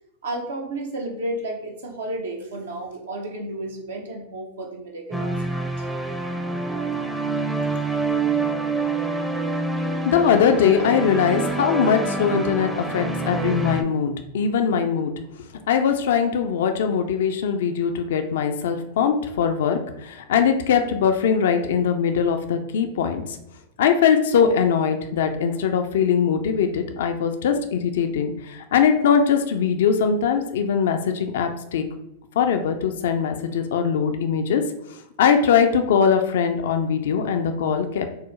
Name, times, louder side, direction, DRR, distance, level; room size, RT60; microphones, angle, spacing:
voice 1, 0.2-5.9, right 1 dB, 75° right, 1 dB, 0.6 m, -32 dB
sound 1, 5.1-13.8, right 3 dB, 5° right, 0.5 m, -26 dB
voice 2, 9.9-15.1 15.7-23.4 23.8-31.8 32.4-34.6 35.2-38.1, left 7 dB, 70° left, 6 dB, 0.4 m, -21 dB
4.4 x 2.0 x 3.1 m, 0.85 s
hypercardioid pair, 100°, 0 cm